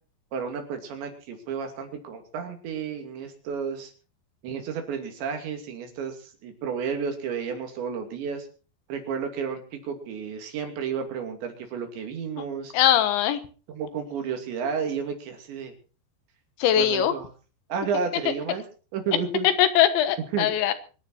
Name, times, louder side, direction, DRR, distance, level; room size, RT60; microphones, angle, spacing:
voice 1, 0.3-3.9 4.4-8.5 8.9-12.7 13.7-15.7 16.8-17.3 17.7-18.6 18.9-19.5 20.3-20.5, right 6 dB, 80° right, 5 dB, 4.9 m, -32 dB
voice 2, 12.7-13.4 16.6-17.2 18.3-18.4 19.4-20.7, left 11 dB, 90° left, 11 dB, 3.7 m, -21 dB
24.0 x 10.5 x 4.4 m, 0.36 s
omnidirectional pair, 5.1 m